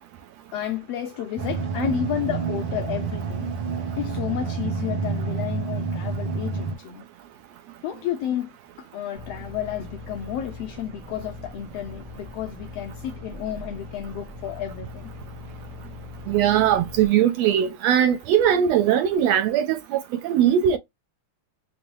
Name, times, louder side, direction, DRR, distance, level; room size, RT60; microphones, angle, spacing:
voice 1, 0.5-3.5 4.0-7.0 7.8-15.1, left 11 dB, 80° left, 1.5 m, -31 dB
sound 1, 1.4-6.8, right 5 dB, 60° right, 1.2 m, -28 dB
sound 2, 9.1-17.1, left 3 dB, 25° right, 0.7 m, -41 dB
voice 2, 16.3-20.8, right 10 dB, 75° right, 1.6 m, -20 dB
5.3 x 2.0 x 3.1 m
omnidirectional pair, 3.4 m